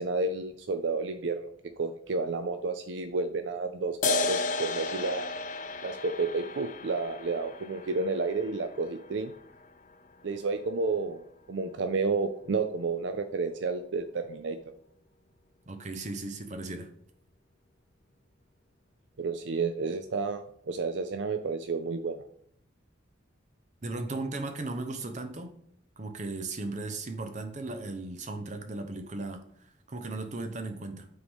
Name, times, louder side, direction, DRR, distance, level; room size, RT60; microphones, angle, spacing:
voice 1, 0.0-1.5 1.8-5.3 5.8-9.3 10.2-11.2 11.5-14.6 19.2-22.2, right 4 dB, 65° right, 8 dB, 0.4 m, -31 dB
sound 1, 4.0-11.0, left 4 dB, 40° left, 0.5 m, -35 dB
voice 2, 15.7-16.9 23.8-25.6 26.0-31.1, right 2 dB, 40° right, 7 dB, 0.8 m, -36 dB
9.8 x 3.9 x 3.6 m, 0.64 s
head